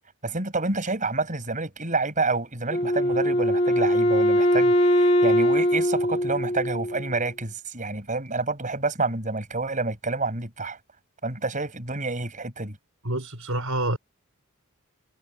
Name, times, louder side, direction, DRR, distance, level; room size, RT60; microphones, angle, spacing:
voice 1, 0.2-10.8 11.2-12.8, right 3 dB, 35° right, 7.6 m, -28 dB
Wind instrument woodwind instrument, 2.7-7.2, equal, 30° left, 2.7 m, -21 dB
voice 2, 13.0-14.0, right 1 dB, 65° right, 6.2 m, -27 dB
head